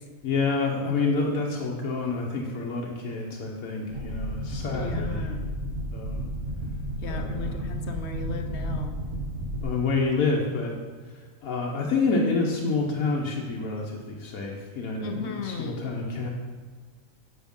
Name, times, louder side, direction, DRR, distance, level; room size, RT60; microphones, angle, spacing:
voice 1, 0.2-5.3 5.9-6.2 7.1-7.7 9.6-10.7 11.4-16.3, left 3 dB, 90° left, -1 dB, 1.4 m, -28 dB
sound 1, 3.9-9.6, right 1 dB, 45° right, 1.3 m, -32 dB
voice 2, 4.7-5.4 7.0-9.0 15.0-15.8, left 5 dB, 60° left, 6 dB, 0.9 m, -36 dB
7.2 x 7.1 x 5.3 m, 1.5 s
omnidirectional pair, 1.4 m